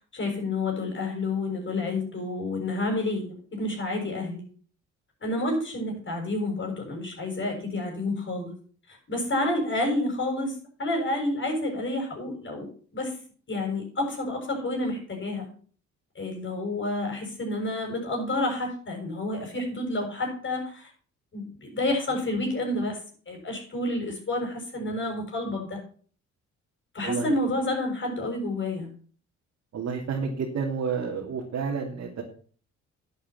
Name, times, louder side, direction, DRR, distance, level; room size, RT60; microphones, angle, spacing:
voice 1, 0.1-4.4 5.2-8.6 8.9-13.2 13.5-15.5 16.1-20.9 21.3-23.0 23.3-25.8 26.9-28.9, left 2 dB, 40° left, -1 dB, 6.4 m, -29 dB
voice 2, 27.0-27.3 29.7-32.2, right 5 dB, 60° right, -1 dB, 2.6 m, -30 dB
11.0 x 8.6 x 5.9 m, 0.44 s
cardioid pair, 90°, 30 cm